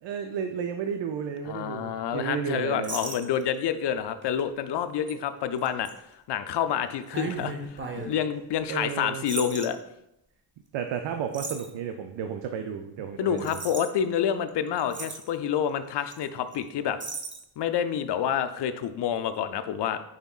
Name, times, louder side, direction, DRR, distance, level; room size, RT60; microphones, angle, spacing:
voice 1, 0.0-3.0 8.7-9.2 10.7-13.6, right 7 dB, 70° right, 6 dB, 0.5 m, -32 dB
voice 2, 1.4-5.9 6.3-9.8 13.2-17.0 17.6-20.0, left 8 dB, 60° left, 11 dB, 0.5 m, -28 dB
sound 1, 2.8-3.6 4.2-4.4 5.1-5.2 5.6-5.9 7.1-8.1 9.3-9.7 11.3-11.7 13.4-13.9 14.5-14.6 14.8-15.3 16.1-16.3 16.5-16.6 17.0-17.4, right 3 dB, 25° right, 0.7 m, -36 dB
5.2 x 3.5 x 2.3 m, 0.84 s
supercardioid pair, 50°, 47 cm